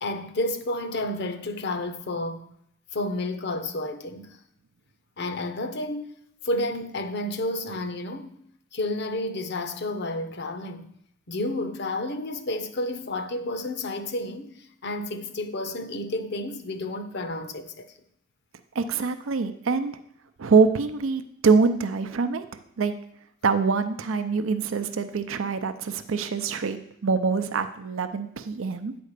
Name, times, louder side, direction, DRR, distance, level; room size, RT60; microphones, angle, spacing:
voice 1, 0.0-2.5 2.9-4.4 5.2-6.1 6.4-8.4 8.7-10.9 11.3-17.9, left 1 dB, 55° left, 0.8 m, -31 dB
voice 2, 18.7-20.0 20.4-22.5 22.8-22.9 23.4-28.9, right 4 dB, 85° right, 0.5 m, -24 dB
9.2 x 4.3 x 6.6 m
head